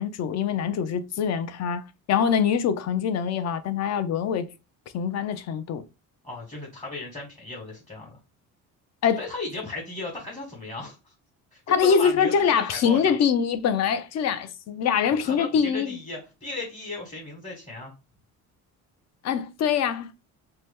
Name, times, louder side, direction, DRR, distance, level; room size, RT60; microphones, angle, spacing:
voice 1, 0.0-1.8 2.1-4.5 4.9-5.8 9.0-9.2 11.7-16.0 19.2-20.1, left 7 dB, 50° left, 0.5 m, -24 dB
voice 2, 6.2-8.1 9.2-11.1 11.5-13.2 15.2-17.9, left 2 dB, 15° left, 1.2 m, -36 dB
2.8 x 2.2 x 3.4 m
cardioid pair, 105°, 34 cm